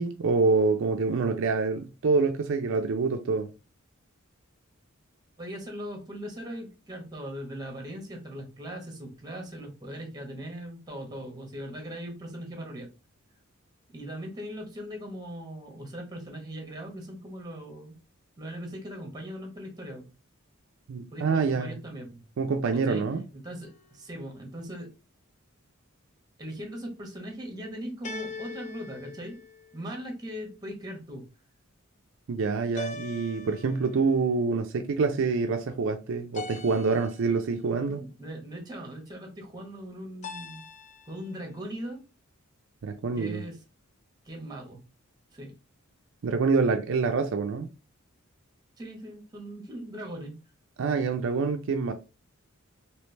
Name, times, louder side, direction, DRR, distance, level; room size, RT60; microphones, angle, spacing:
voice 1, 0.0-3.5 20.9-21.7 22.4-23.2 32.3-38.0 42.8-43.4 46.2-47.7 50.8-51.9, right 4 dB, 65° right, 0.4 m, -26 dB
voice 2, 5.4-12.9 13.9-17.9 18.4-20.1 21.1-22.2 22.8-23.0 23.3-24.9 26.4-29.4 29.7-31.3 37.9-40.6 41.1-42.0 43.1-43.6 44.2-44.8 45.3-45.5 48.8-50.4, equal, 20° right, 1.1 m, -39 dB
sound 1, 23.6-24.3 28.0-30.1 32.7-34.2 36.3-37.5 40.2-41.2, left 3 dB, 35° left, 0.4 m, -42 dB
3.2 x 3.0 x 3.2 m
head